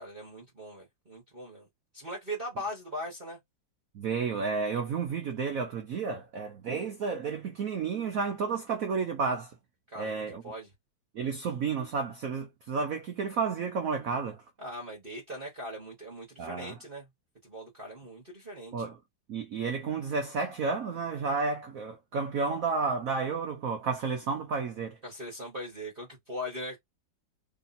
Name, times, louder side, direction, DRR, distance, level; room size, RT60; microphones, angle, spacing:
voice 1, 0.0-1.7 1.9-3.4 9.9-10.7 14.6-17.1 17.4-18.9 25.0-26.8, equal, 30° right, 1.3 m, -40 dB
voice 2, 3.9-9.5 10.0-10.4 11.1-14.4 16.4-16.8 18.7-19.0 19.3-25.0, right 5 dB, 70° right, 0.8 m, -31 dB
3.3 x 2.7 x 4.0 m
omnidirectional pair, 2.2 m